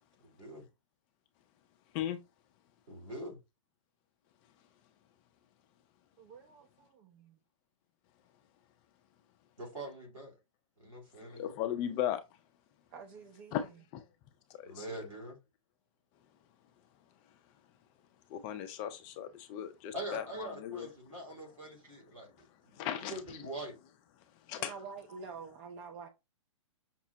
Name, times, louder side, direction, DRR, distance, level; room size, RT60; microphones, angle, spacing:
voice 1, 0.2-0.6 2.9-3.4 9.6-10.3 10.8-11.6 14.6-15.4 19.9-23.8, right 1 dB, 85° right, 2.5 m, -44 dB
voice 2, 6.2-7.4 12.9-13.6 24.6-26.1, right 5 dB, 30° right, 0.6 m, -48 dB
voice 3, 11.2-12.2 13.5-14.0 14.5-14.8 18.3-20.9 22.8-23.1 24.5-24.7, left 10 dB, 30° left, 0.5 m, -37 dB
5.9 x 2.0 x 2.8 m
figure-of-eight pair, 115°, 17 cm